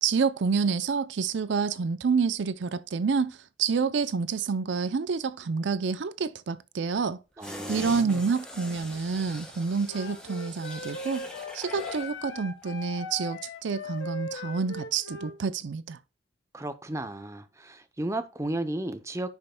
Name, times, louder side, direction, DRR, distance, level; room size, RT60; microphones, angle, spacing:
voice 1, 0.0-11.2 11.5-16.0, right 5 dB, 70° right, 0.5 m, -28 dB
sound 1, 7.4-12.2 12.5-12.6, left 1 dB, 5° left, 1.6 m, -42 dB
voice 2, 7.4-8.2 16.5-19.3, right 1 dB, 15° right, 0.6 m, -34 dB
Wind instrument woodwind instrument, 9.9-15.4, left 2 dB, 85° left, 1.2 m, -39 dB
10.5 x 5.4 x 2.2 m
head